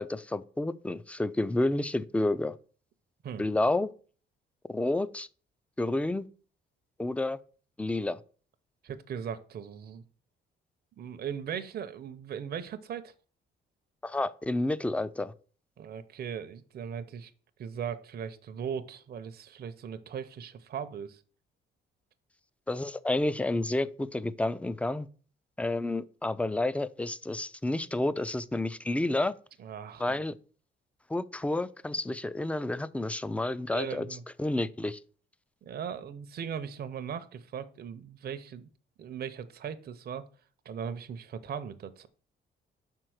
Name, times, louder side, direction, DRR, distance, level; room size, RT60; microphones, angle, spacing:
voice 1, 0.0-2.6 3.4-3.9 4.7-5.3 5.8-6.3 7.0-7.4 7.8-8.2 14.0-15.3 22.7-25.1 25.6-29.3 30.0-30.3 31.1-34.1 34.4-35.0, left 2 dB, 5° left, 0.4 m, -30 dB
voice 2, 8.8-10.0 11.0-13.1 15.8-17.3 17.6-21.2 29.6-30.2 33.7-34.2 35.7-38.7 39.0-40.3 40.6-42.1, right 7 dB, 50° right, 0.7 m, -38 dB
5.6 x 4.5 x 6.3 m
cardioid pair, 90°, 20 cm